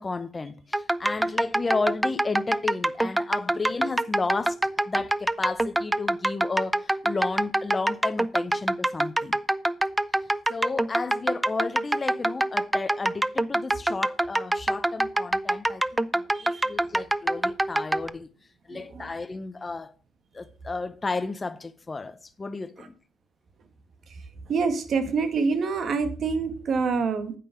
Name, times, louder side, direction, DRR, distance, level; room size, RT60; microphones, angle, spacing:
voice 1, 0.0-4.6 4.9-9.4 10.5-18.3 18.7-19.9 20.3-23.0, left 3 dB, 25° left, 0.7 m, -32 dB
sound 1, 0.7-18.1, right 1 dB, 10° right, 0.4 m, -25 dB
voice 2, 16.3-16.7 18.7-19.0 22.8-22.9 24.5-27.3, right 4 dB, 55° right, 1.4 m, -26 dB
8.5 x 5.3 x 5.8 m
cardioid pair, 90°, 0 cm